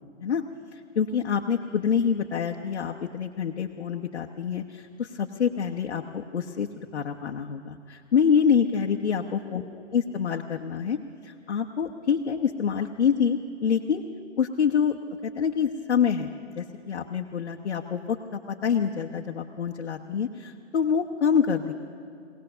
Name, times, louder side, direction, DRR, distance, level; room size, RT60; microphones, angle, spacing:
voice 1, 0.9-9.7 9.9-11.0 11.2-14.0 14.4-16.3 16.5-21.7, left 7 dB, 60° left, 1 dB, 1.0 m, -26 dB
21.5 x 18.0 x 6.8 m, 2.5 s
hypercardioid pair, 170°, 38 cm